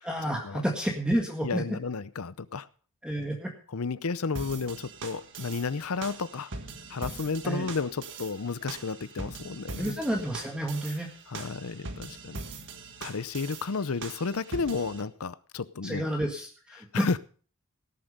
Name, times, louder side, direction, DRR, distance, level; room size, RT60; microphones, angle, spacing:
voice 1, 0.0-1.8 3.0-3.5 7.4-7.7 9.8-11.1 11.3-11.5 15.8-17.1, right 1 dB, 5° right, 0 dB, 1.8 m, -30 dB
voice 2, 1.4-2.7 3.7-6.5 6.9-10.0 10.9-11.0 11.3-12.4 13.0-16.0 16.8-17.2, left 4 dB, 70° left, 17 dB, 0.7 m, -32 dB
sound 1, 4.3-15.0, right 3 dB, 60° right, 1.6 m, -42 dB
18.0 x 7.7 x 5.3 m, 0.41 s
head